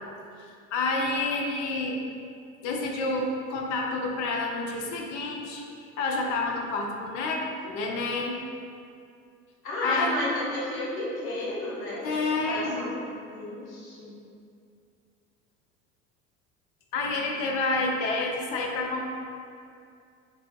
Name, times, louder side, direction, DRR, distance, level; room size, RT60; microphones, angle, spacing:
voice 1, 0.4-2.0 2.6-5.6 6.0-8.4 9.8-10.1 12.0-12.9 16.9-19.1, left 3 dB, 60° left, 0 dB, 0.5 m, -29 dB
voice 2, 9.6-13.0 13.3-14.1, left 1 dB, 80° left, -6 dB, 0.9 m, -32 dB
3.2 x 2.9 x 2.2 m, 2.4 s
hypercardioid pair, 70°, 41 cm